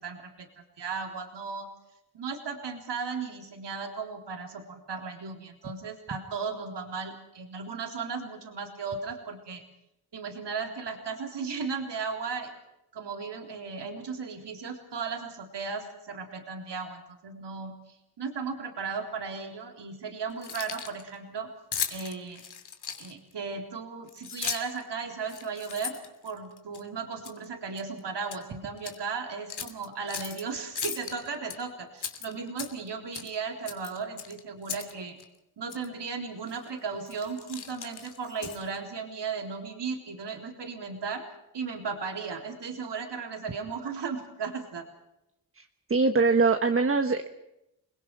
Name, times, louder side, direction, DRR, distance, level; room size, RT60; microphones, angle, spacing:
voice 1, 0.0-1.7 2.1-9.6 10.1-12.5 12.9-21.5 21.9-22.4 23.0-35.2 35.6-41.3 41.5-44.9, right 5 dB, 85° right, 3 dB, 3.8 m, -36 dB
Keys jangling, 20.3-21.0 21.7-23.3 24.1-24.8 25.2-26.8 27.2-27.4 27.8-28.4 28.8-29.0 29.5-30.4 30.8-31.6 32.0-32.9 33.1-33.3 33.7-34.9 35.2-35.3 35.7-35.9 36.5-36.7 37.0-38.8, left 6 dB, 70° left, 3.0 m, -37 dB
voice 2, 45.9-47.3, right 4 dB, 30° right, 6 dB, 1.3 m, -23 dB
30.0 x 22.0 x 4.8 m, 0.87 s
wide cardioid pair, 165°, 41 cm